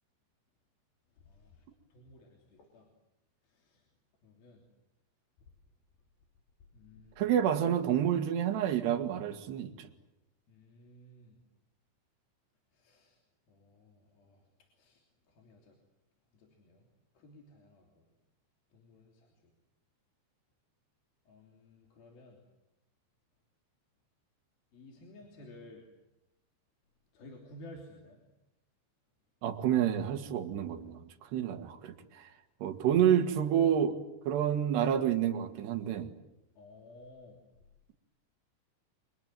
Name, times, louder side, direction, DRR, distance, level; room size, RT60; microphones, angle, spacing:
voice 1, 1.2-1.6 1.9-2.9 3.5-3.8 4.2-4.6 6.7-7.3 10.5-11.4 12.7-13.2 13.5-14.4 14.8-15.0 15.3-15.7 16.3-16.9 17.1-18.0 18.7-19.3 21.3-22.4 24.7-25.9 27.1-28.2 36.6-37.4, left 1 dB, 55° left, 1 dB, 4.8 m, -54 dB
voice 2, 7.2-9.9 29.4-31.0 31.3-32.3 32.6-34.0 34.3-36.1, right 9 dB, 70° right, 6 dB, 3.7 m, -29 dB
29.5 x 25.5 x 7.8 m, 0.91 s
omnidirectional pair, 5.2 m